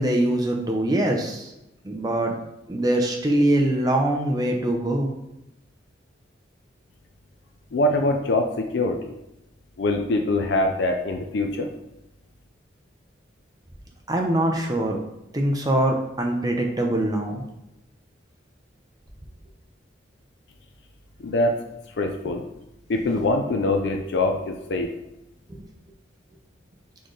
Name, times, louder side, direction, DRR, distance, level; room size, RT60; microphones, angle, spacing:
voice 1, 0.0-1.5 1.8-2.3 2.7-5.1 14.1-15.0 15.3-17.4 25.5-25.6, right 1 dB, 20° right, 1 dB, 0.6 m, -23 dB
voice 2, 7.7-9.1 9.8-11.7 21.2-21.6 22.0-22.4 22.9-24.9, left 2 dB, 60° left, 4 dB, 0.4 m, -23 dB
4.2 x 3.8 x 3.2 m, 0.89 s
head